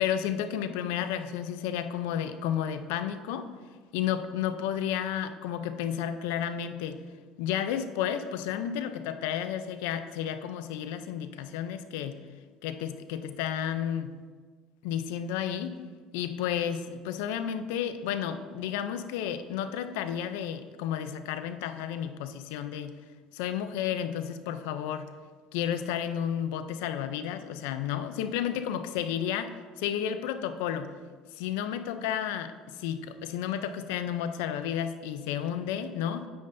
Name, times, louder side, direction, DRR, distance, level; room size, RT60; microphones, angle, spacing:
voice 1, 0.0-3.5 3.9-7.0 7.4-12.2 12.6-14.1 14.8-15.8 16.1-23.0 23.3-25.1 25.5-30.9 31.3-36.3, left 9 dB, 80° left, 10 dB, 0.6 m, -32 dB
9.6 x 8.5 x 2.7 m, 1.5 s
supercardioid pair, 85°, 0 cm